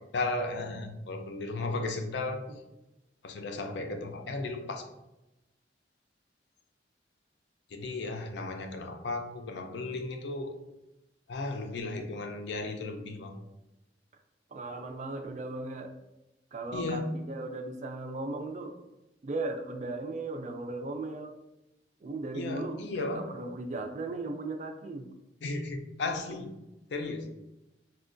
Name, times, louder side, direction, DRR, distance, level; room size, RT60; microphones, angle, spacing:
voice 1, 0.1-2.4 3.2-4.9 7.7-10.6 11.3-13.3 16.7-17.1 22.3-23.3 25.4-26.5 26.9-27.3, left 2 dB, 80° left, 6 dB, 0.4 m, -35 dB
voice 2, 14.5-15.9 16.5-18.8 19.2-21.4 22.0-25.1, right 2 dB, 40° right, 5 dB, 0.3 m, -37 dB
4.2 x 2.2 x 2.5 m, 0.95 s
head